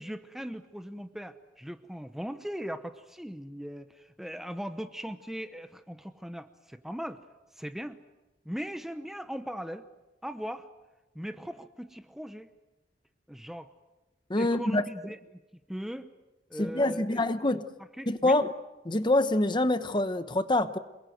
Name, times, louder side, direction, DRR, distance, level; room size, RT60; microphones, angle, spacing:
voice 1, 0.0-7.2 7.6-8.0 8.4-9.8 10.2-10.7 11.1-12.5 13.3-13.7 14.4-15.4 15.7-16.1 16.5-17.5 18.0-18.4, equal, ahead, 0.8 m, -39 dB
voice 2, 14.3-14.8 16.6-17.7 18.1-18.5 18.9-20.8, left 2 dB, 25° left, 1.0 m, -25 dB
28.0 x 21.0 x 7.9 m
head